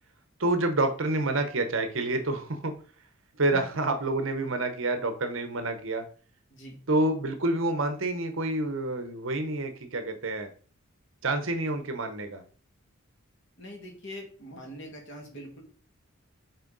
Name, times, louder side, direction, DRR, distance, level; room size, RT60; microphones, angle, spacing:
voice 1, 0.4-2.7 3.4-6.0 6.9-10.5 11.2-12.4, right 2 dB, 65° right, 7 dB, 0.9 m, -28 dB
voice 2, 13.6-15.6, equal, 55° left, 0 dB, 2.1 m, -43 dB
6.6 x 4.5 x 3.9 m, 0.42 s
head